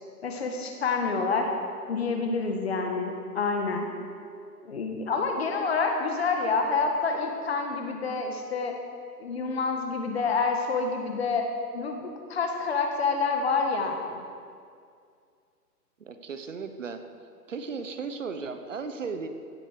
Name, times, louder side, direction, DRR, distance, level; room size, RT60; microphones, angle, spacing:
voice 1, 0.2-1.5 1.9-3.9 4.6-8.7 9.2-11.4 11.7-14.2, left 4 dB, 40° left, 3 dB, 1.7 m, -28 dB
voice 2, 16.0-17.0 17.5-19.3, right 5 dB, 50° right, 8 dB, 1.1 m, -35 dB
16.0 x 8.2 x 6.6 m, 2.2 s
hypercardioid pair, 170°, 47 cm